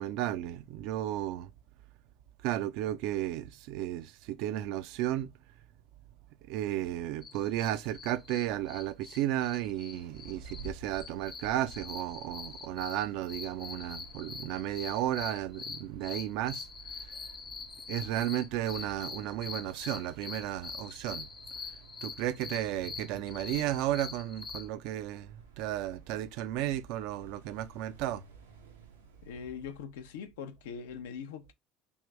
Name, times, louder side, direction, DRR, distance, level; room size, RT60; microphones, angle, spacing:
voice 1, 0.0-1.5 2.4-5.3 6.5-16.7 17.1-17.2 17.9-21.3 22.0-28.2, right 13 dB, 65° right, 0.4 m, -33 dB
sound 1, 7.2-24.7, left 5 dB, 30° left, 0.7 m, -44 dB
sound 2, 9.9-29.8, right 4 dB, 90° right, 0.7 m, -53 dB
voice 2, 29.2-31.5, left 7 dB, 75° left, 0.5 m, -42 dB
3.5 x 2.6 x 3.1 m
hypercardioid pair, 70°, 0 cm